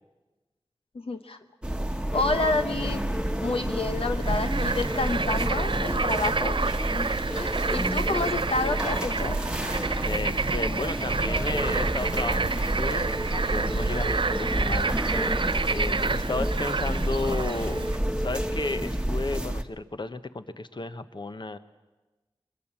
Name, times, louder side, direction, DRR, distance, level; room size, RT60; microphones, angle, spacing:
voice 1, 0.9-1.4 2.1-3.0 3.4-6.6 6.9-9.4, left 3 dB, 75° left, 7 dB, 0.9 m, -29 dB
sound 1, 1.6-19.6, right 1 dB, 10° right, 1.2 m, -29 dB
Bird / Frog, 4.2-18.0, right 4 dB, 60° right, 0.6 m, -29 dB
voice 2, 10.0-15.4 15.6-17.8 18.2-21.6, left 3 dB, 50° left, 11 dB, 1.0 m, -33 dB
22.0 x 21.5 x 7.3 m, 1.2 s
wide cardioid pair, 40°, 10 cm